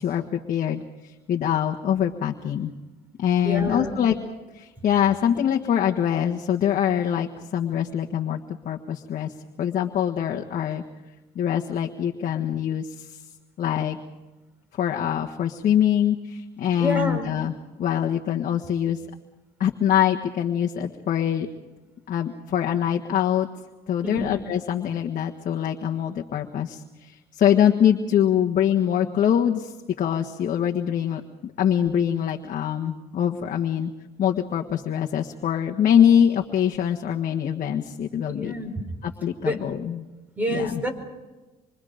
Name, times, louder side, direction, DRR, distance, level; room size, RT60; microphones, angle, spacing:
voice 1, 0.0-2.7 3.2-4.1 4.5-10.8 11.3-13.2 13.6-14.0 14.8-17.5 17.8-19.0 19.6-21.5 22.1-23.5 23.9-33.9 34.2-38.6 39.0-40.0 40.5-40.8, left 9 dB, 50° left, 1 dB, 1.5 m, -24 dB
voice 2, 3.4-4.0 16.8-17.3 24.0-24.3 38.4-38.7 39.4-39.6 40.4-40.9, left 1 dB, 10° right, 5 dB, 5.3 m, -27 dB
26.5 x 24.0 x 5.1 m, 1.1 s
cardioid pair, 110°, 17 cm